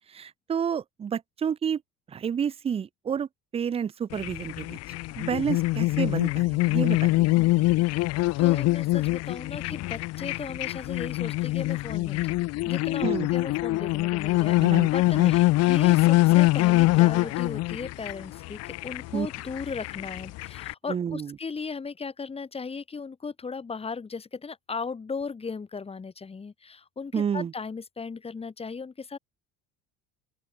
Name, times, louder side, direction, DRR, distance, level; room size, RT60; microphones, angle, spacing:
voice 1, 0.0-1.8 2.1-4.8 5.2-7.5 13.0-13.3 14.4-14.9 15.1-15.3 19.1-19.3 20.9-21.4 27.1-27.5, right 7 dB, 20° right, 0.4 m, -30 dB
sound 1, 4.1-20.7, left 19 dB, 55° left, 0.5 m, -24 dB
voice 2, 8.4-14.6 14.9-29.2, left 5 dB, 20° left, 1.8 m, -37 dB
open air
cardioid pair, 125°, 30 cm